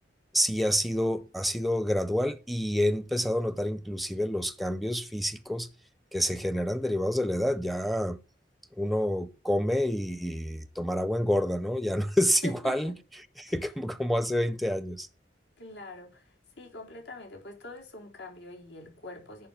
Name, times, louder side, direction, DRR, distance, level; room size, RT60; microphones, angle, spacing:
voice 1, 0.3-5.7 6.1-8.2 8.8-12.9 13.4-15.1, equal, ahead, 0.5 m, -28 dB
voice 2, 12.4-12.9 13.5-13.6 15.6-19.5, left 2 dB, 80° left, 4.1 m, -44 dB
10.0 x 5.5 x 8.0 m
head